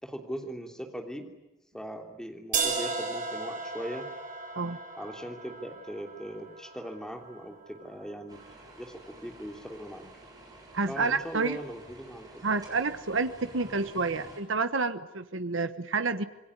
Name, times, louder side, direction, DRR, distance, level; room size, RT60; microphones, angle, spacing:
voice 1, 0.0-1.3 1.7-4.1 5.0-10.0 10.9-12.6, equal, 5° left, 3 dB, 3.1 m, -40 dB
sound 1, 2.5-8.5, right 4 dB, 40° right, 7.0 m, -36 dB
sound 2, 8.3-14.4, right 2 dB, 20° right, 6.9 m, -50 dB
voice 2, 10.7-11.6 12.4-16.2, right 4 dB, 75° right, 11 dB, 1.2 m, -29 dB
27.0 x 21.5 x 9.8 m, 0.96 s
head